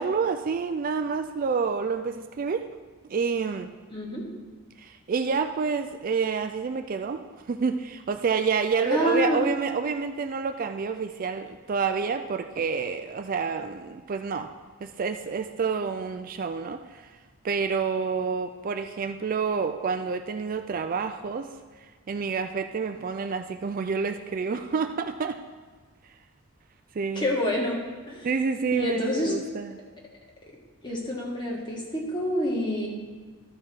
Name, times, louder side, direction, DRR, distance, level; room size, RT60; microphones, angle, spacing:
voice 1, 0.0-2.7 3.1-3.7 4.8-7.2 7.5-14.5 14.8-17.2 17.4-21.5 22.1-25.4 26.0-26.1 26.9-27.3 28.2-29.8, right 5 dB, 40° right, 7 dB, 0.4 m, -28 dB
voice 2, 3.9-4.2 8.8-9.5 27.1-27.8 28.1-28.3 28.7-29.4 30.8-32.9, left 1 dB, 20° left, -2 dB, 1.7 m, -27 dB
13.0 x 4.7 x 4.5 m, 1.4 s
head